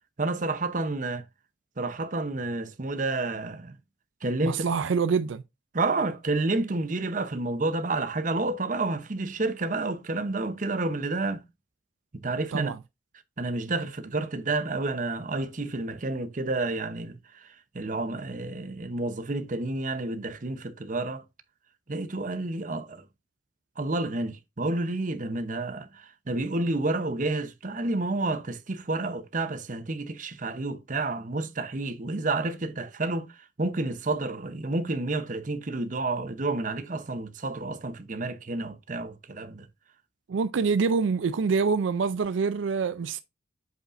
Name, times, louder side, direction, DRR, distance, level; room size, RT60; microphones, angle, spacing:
voice 1, 0.2-1.2 1.8-3.8 4.2-4.8 5.7-11.4 12.1-12.7 13.4-17.2 17.7-21.2 21.9-23.0 23.8-33.3 33.6-39.7, right 2 dB, 45° right, 0.8 m, -30 dB
voice 2, 4.4-5.4 12.5-12.8 40.3-43.2, right 5 dB, 85° right, 0.4 m, -26 dB
7.9 x 5.0 x 2.5 m
head